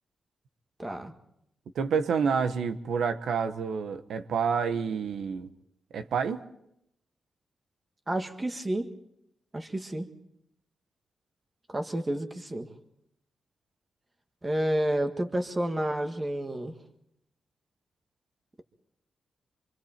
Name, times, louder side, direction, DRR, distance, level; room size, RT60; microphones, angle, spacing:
voice 1, 0.8-1.1 8.1-8.9 9.5-10.1 11.7-12.7 14.4-16.7, right 1 dB, 20° right, 6 dB, 1.6 m, -30 dB
voice 2, 1.7-5.5 5.9-6.4, right 6 dB, 85° right, 9 dB, 1.2 m, -28 dB
27.0 x 25.5 x 4.4 m, 0.78 s
wide cardioid pair, 155°, 0 cm